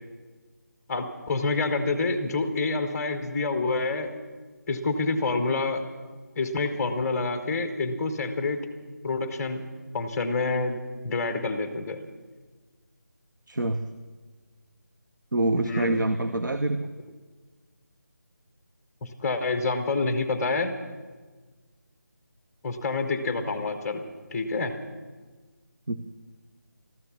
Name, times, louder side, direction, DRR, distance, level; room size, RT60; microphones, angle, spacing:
voice 1, 0.9-4.2 4.7-5.9 6.3-8.6 9.0-9.7 9.9-10.8 11.0-12.0 15.6-16.0 19.0-20.8 22.6-24.8, left 3 dB, 5° left, 7 dB, 0.6 m, -27 dB
voice 2, 13.5-13.8 15.3-16.9 25.9-26.0, right 2 dB, 85° right, 9 dB, 1.0 m, -26 dB
14.0 x 13.0 x 7.2 m, 1.4 s
figure-of-eight pair, 175°, 10 cm